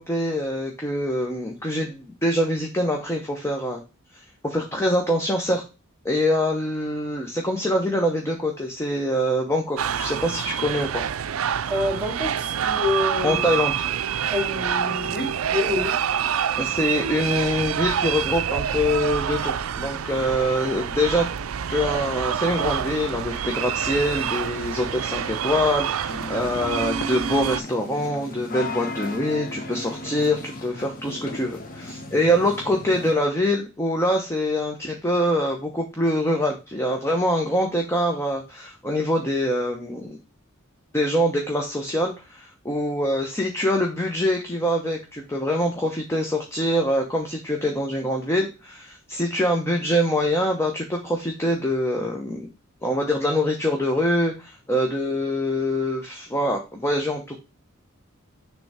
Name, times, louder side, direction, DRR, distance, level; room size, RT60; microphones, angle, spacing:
voice 1, 0.0-3.8 4.4-5.6 6.0-11.0 13.2-13.9 16.6-21.3 21.7-40.2 40.9-52.5 52.8-57.4, equal, 15° left, 2 dB, 0.9 m, -24 dB
sound 1, 9.8-27.6, right 8 dB, 90° right, 0.5 m, -27 dB
voice 2, 11.7-13.4 14.3-16.0, left 2 dB, 5° right, 2 dB, 2.6 m, -27 dB
sound 2, 26.1-33.1, left 2 dB, 40° left, 1.2 m, -36 dB
6.8 x 3.4 x 4.8 m, 0.30 s
head